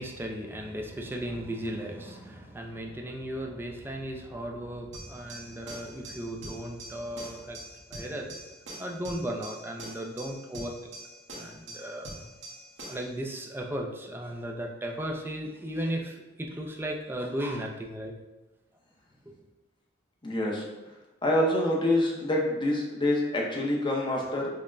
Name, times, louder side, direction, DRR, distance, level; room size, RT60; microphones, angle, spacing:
voice 1, 0.0-7.6 7.9-8.3 8.8-10.7 11.3-12.1 12.8-18.1, right 1 dB, 10° right, 1 dB, 0.4 m, -36 dB
sound 1, 4.9-13.1, right 1 dB, 65° right, 1.0 m, -44 dB
voice 2, 20.2-20.6 21.2-24.5, left 1 dB, 25° left, -2 dB, 0.6 m, -26 dB
5.3 x 2.0 x 2.5 m, 1.1 s
head